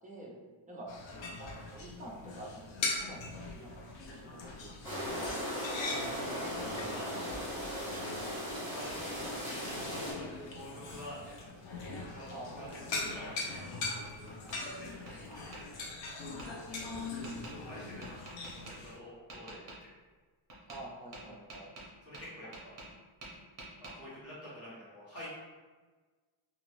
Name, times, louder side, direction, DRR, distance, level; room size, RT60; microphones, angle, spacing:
voice 1, 0.0-0.3 0.7-0.9 1.4-3.7 4.1-5.2 5.7-6.2 12.3-12.8 20.7-21.7, right 1 dB, 15° right, -4 dB, 0.5 m, -48 dB
sound 1, 0.9-19.0, left 3 dB, 65° left, 0.6 m, -41 dB
sound 2, 4.8-10.1, equal, 10° left, 1.0 m, -37 dB
voice 2, 6.2-7.2 8.7-11.4 11.8-12.3 12.6-13.8 14.6-16.0 17.4-19.7 22.0-22.8 23.8-25.3, equal, 30° left, -9 dB, 1.3 m, -48 dB
Tap, 13.5-14.6 15.1-15.6 16.4-16.5 17.2-17.5 18.0-18.7 19.3-19.8 20.5-20.8 21.1-23.0 23.2-23.9, right 2 dB, 35° right, 0.8 m, -48 dB
2.9 x 2.5 x 3.1 m, 1.4 s
wide cardioid pair, 175°, 49 cm